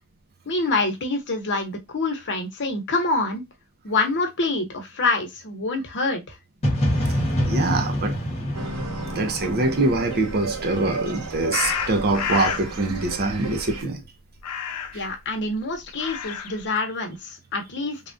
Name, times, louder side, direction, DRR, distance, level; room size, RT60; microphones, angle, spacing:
voice 1, 0.5-3.4 3.8-6.2 14.9-18.0, left 3 dB, 55° left, 0.9 m, -26 dB
sound 1, 6.6-10.5, equal, 30° left, 1.0 m, -26 dB
voice 2, 7.5-8.2 9.1-14.0 14.9-15.0, right 2 dB, 45° right, 0.6 m, -24 dB
sound 2, 8.5-13.8, right 3 dB, 80° right, 0.9 m, -33 dB
sound 3, 11.5-12.7 14.4-15.1 15.8-16.7, left 7 dB, 85° left, 0.4 m, -29 dB
3.4 x 2.3 x 2.5 m
head